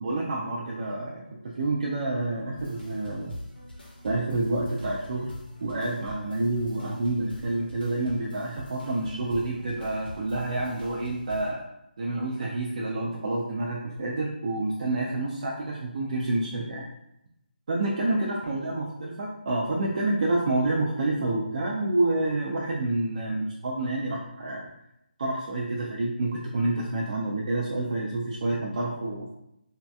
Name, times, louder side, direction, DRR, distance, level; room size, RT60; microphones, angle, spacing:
voice 1, 0.0-3.4 4.0-5.3 5.6-11.6 12.0-16.8 17.7-24.7 25.2-29.3, right 2 dB, 45° right, -4 dB, 0.4 m, -28 dB
sound 1, 2.6-11.5, left 1 dB, 85° left, 1.1 m, -44 dB
3.1 x 2.7 x 2.2 m, 0.84 s
figure-of-eight pair, 165°, 5 cm